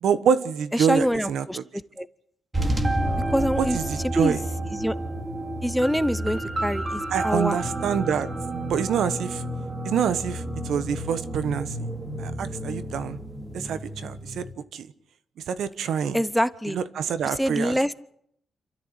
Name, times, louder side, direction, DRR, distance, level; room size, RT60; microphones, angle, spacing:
voice 1, 0.0-1.6 3.7-4.4 7.1-8.3 8.7-9.4 9.8-11.9 12.2-13.2 13.5-14.4 14.7-14.9 15.5-16.2 16.7-17.9, right 7 dB, 80° right, 13 dB, 1.2 m, -26 dB
voice 2, 0.7-2.1 3.3-3.8 4.0-4.4 4.7-4.9 5.6-7.6 16.1-16.8 17.3-17.9, equal, ahead, 15 dB, 0.8 m, -25 dB
sound 1, 2.5-14.5, right 1 dB, 25° right, 2.3 m, -30 dB
28.0 x 13.5 x 8.1 m, 0.71 s
cardioid pair, 105°, 0 cm